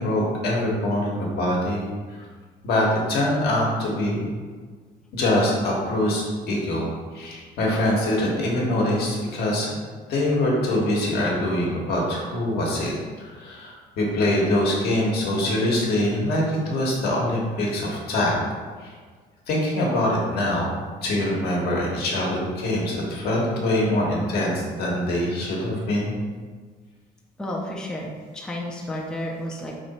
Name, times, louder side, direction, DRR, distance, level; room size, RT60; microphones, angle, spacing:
voice 1, 0.0-1.9 2.6-4.3 5.1-6.9 7.1-9.7 10.1-12.9 13.2-18.4 19.5-20.7 21.0-26.1, left 1 dB, 70° left, -3 dB, 1.1 m, -24 dB
voice 2, 27.4-29.8, left 1 dB, 5° left, -2 dB, 0.5 m, -32 dB
3.1 x 2.7 x 4.1 m, 1.5 s
cardioid pair, 110°, 17 cm